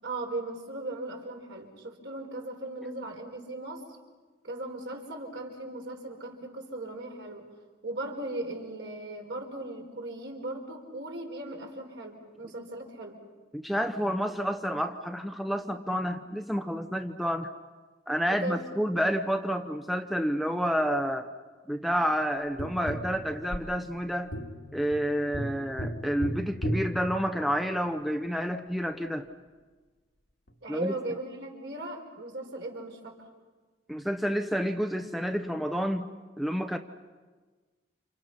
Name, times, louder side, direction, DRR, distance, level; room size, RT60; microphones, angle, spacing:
voice 1, 0.0-3.8 4.4-7.5 7.8-13.2 18.3-18.6 30.6-33.2, right 2 dB, 65° right, 1 dB, 4.9 m, -38 dB
voice 2, 13.5-17.5 18.1-21.3 21.7-24.3 24.7-29.3 30.7-30.9 33.9-36.1 36.4-36.8, equal, ahead, 5 dB, 0.8 m, -29 dB
Tap, 22.6-27.9 30.5-30.6, equal, 85° left, 2.1 m, -36 dB
30.0 x 27.5 x 5.8 m, 1.3 s
head